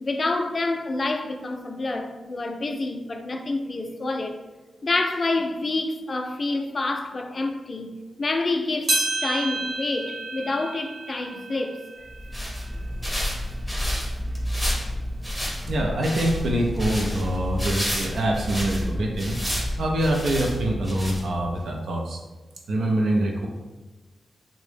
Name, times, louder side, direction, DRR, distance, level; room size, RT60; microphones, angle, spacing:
voice 1, 0.0-4.4 4.8-7.9 8.2-8.9 9.2-11.8, left 2 dB, 40° left, 0.3 m, -27 dB
sound 1, 8.9-13.5 14.0-14.1 14.9-15.0 16.0-16.1, right 2 dB, 65° right, 0.9 m, -31 dB
sound 2, 12.1-21.6, equal, 5° right, 0.7 m, -29 dB
voice 2, 15.7-19.4 19.8-22.2 22.7-23.5, right 1 dB, 85° right, 0.4 m, -25 dB
3.5 x 2.0 x 3.3 m
wide cardioid pair, 105°, 0 cm